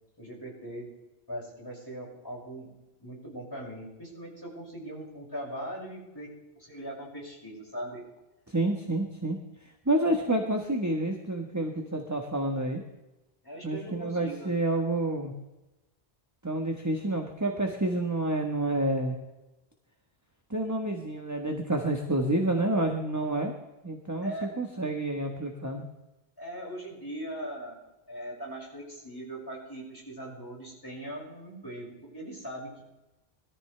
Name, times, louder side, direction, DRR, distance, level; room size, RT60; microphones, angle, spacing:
voice 1, 0.2-0.9 1.3-2.7 3.0-8.0 13.4-14.5 24.2-24.5 26.4-27.8 28.1-32.8, right 1 dB, 20° left, -4 dB, 6.1 m, -40 dB
voice 2, 8.5-9.4 9.8-12.8 13.6-15.3 16.4-19.1 20.5-23.5 23.8-25.9, right 1 dB, 15° right, 2 dB, 1.3 m, -29 dB
21.5 x 14.0 x 3.3 m, 0.99 s
omnidirectional pair, 1.1 m